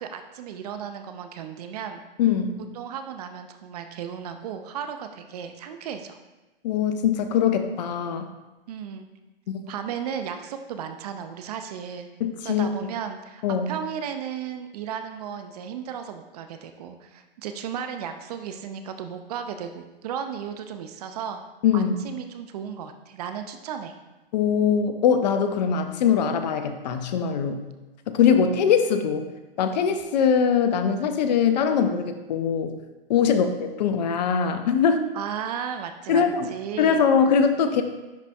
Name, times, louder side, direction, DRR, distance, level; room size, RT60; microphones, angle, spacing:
voice 1, 0.0-2.0 2.7-6.2 8.7-9.1 9.7-12.1 12.4-21.4 21.7-24.0 33.2-33.5 35.1-37.1, right 8 dB, 40° right, 7 dB, 0.5 m, -35 dB
voice 2, 2.2-2.6 6.6-8.3 9.5-9.6 12.2-12.7 13.4-13.7 21.6-22.0 24.3-27.6 28.1-29.3 29.6-32.7 33.1-33.5 33.8-35.0 36.1-36.5 36.8-37.8, left 7 dB, 45° left, 8 dB, 0.6 m, -22 dB
10.5 x 4.0 x 2.3 m, 1.1 s
hypercardioid pair, 120°, 30 cm